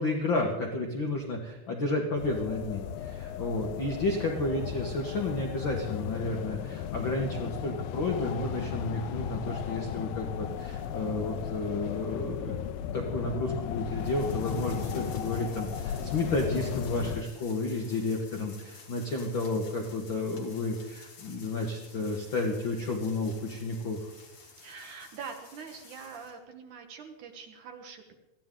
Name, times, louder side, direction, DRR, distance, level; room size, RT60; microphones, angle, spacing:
voice 1, 0.0-24.0, left 2 dB, 60° left, 1 dB, 1.3 m, -31 dB
sound 1, 2.2-17.2, left 9 dB, 80° left, 2.5 m, -36 dB
sound 2, 14.0-26.4, left 4 dB, 40° left, 2.8 m, -52 dB
voice 2, 24.6-28.1, right 6 dB, 65° right, 5 dB, 2.4 m, -44 dB
21.5 x 15.5 x 3.8 m, 1.0 s
omnidirectional pair, 4.3 m